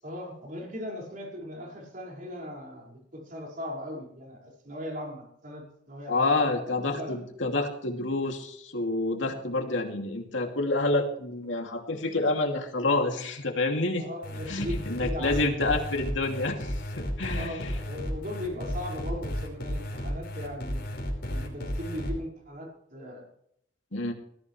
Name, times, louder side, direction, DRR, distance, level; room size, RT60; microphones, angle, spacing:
voice 1, 0.0-6.6 7.0-7.2 14.0-15.6 17.3-20.9 21.2-23.2, left 1 dB, 45° right, -1 dB, 5.4 m, -38 dB
voice 2, 6.1-14.0 14.5-17.7 23.9-24.1, left 2 dB, 85° left, 2 dB, 2.7 m, -28 dB
sound 1, 14.2-22.1, equal, 60° left, 5.3 m, -33 dB
20.0 x 15.0 x 3.3 m, 0.70 s
head